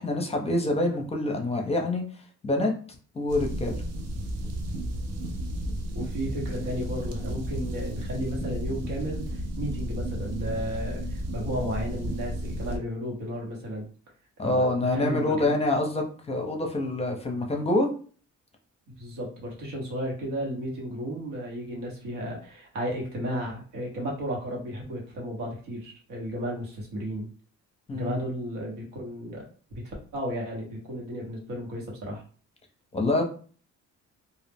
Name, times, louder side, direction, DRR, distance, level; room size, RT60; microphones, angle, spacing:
voice 1, 0.0-2.0 2.4-2.7 3.1-3.8 14.4-17.9 27.9-28.2 32.9-33.2, left 2 dB, 20° left, 2 dB, 0.6 m, -26 dB
sound 1, 3.3-12.8, equal, 55° right, 0.6 m, -33 dB
voice 2, 5.9-13.9 14.4-15.5 19.0-27.3 27.9-29.4 29.8-32.2, equal, 90° right, -2 dB, 1.1 m, -34 dB
2.3 x 2.0 x 3.4 m, 0.42 s
cardioid pair, 90°, 30 cm